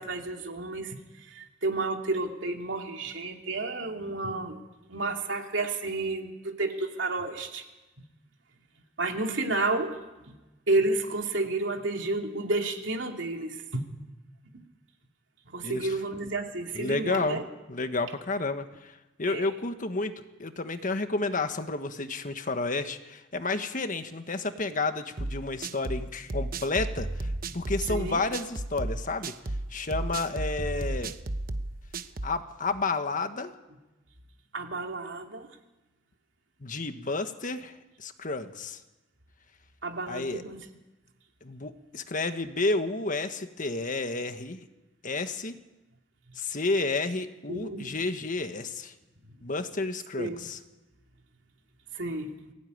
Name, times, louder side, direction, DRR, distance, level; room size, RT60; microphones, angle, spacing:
voice 1, 0.0-4.6 4.9-7.6 9.0-10.3 10.7-13.9 14.5-14.6 15.5-17.4 19.3-19.5 27.5-27.6 27.9-28.2 34.5-35.5 39.8-40.7 47.5-48.0 50.2-50.5 51.9-52.3, right 2 dB, 80° right, 3 dB, 2.9 m, -31 dB
voice 2, 15.6-15.9 16.7-17.4 17.7-29.3 29.7-31.1 32.2-33.5 36.6-37.7 38.0-38.8 40.1-40.4 41.4-44.6 45.0-45.5 46.3-48.9 49.4-50.6, left 3 dB, 45° left, 8 dB, 1.5 m, -31 dB
sound 1, 25.2-32.4, right 2 dB, 50° right, 1.0 m, -33 dB
23.0 x 16.5 x 9.6 m, 1.1 s
head